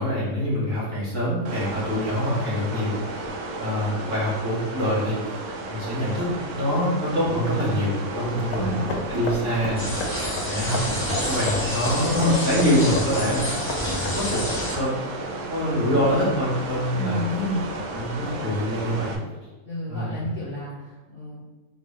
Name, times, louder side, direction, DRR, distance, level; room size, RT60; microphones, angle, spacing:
voice 1, 0.0-3.0 3.6-5.2 5.7-10.0 10.4-13.5 14.1-14.4 14.7-14.9 15.5-17.2 17.9-19.2 19.9-20.2, equal, 60° right, -8 dB, 1.9 m, -25 dB
sound 1, 1.4-19.1, right 2 dB, 80° right, 1.1 m, -33 dB
sound 2, 8.2-14.4, left 2 dB, 75° left, 1.1 m, -34 dB
voice 2, 8.5-8.9 15.8-16.2 16.9-17.7 19.6-21.4, equal, 40° left, -9 dB, 1.3 m, -31 dB
sound 3, 9.8-14.8, left 1 dB, 10° left, 1.1 m, -29 dB
4.0 x 3.9 x 3.2 m, 1.2 s
omnidirectional pair, 1.6 m